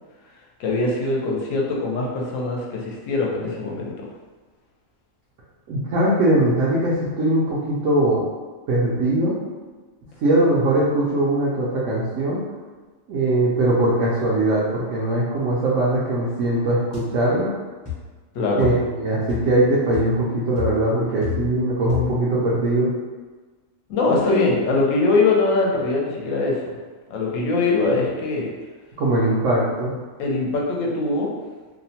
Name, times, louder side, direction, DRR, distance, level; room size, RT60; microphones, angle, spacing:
voice 1, 0.6-3.9 18.3-18.7 23.9-26.6 27.1-28.5 30.2-31.3, left 3 dB, 75° left, -2 dB, 0.9 m, -22 dB
voice 2, 5.7-8.3 8.7-9.3 10.2-12.4 13.1-17.5 18.6-22.9 29.0-29.9, right 1 dB, 75° right, -7 dB, 0.9 m, -21 dB
sound 1, 16.9-17.1 17.8-18.1 18.6-18.9 19.3-19.6 19.9-20.2 20.6-21.6 21.9-22.3, left 9 dB, 20° left, 0.6 m, -32 dB
2.8 x 2.0 x 2.7 m, 1.3 s
omnidirectional pair, 1.4 m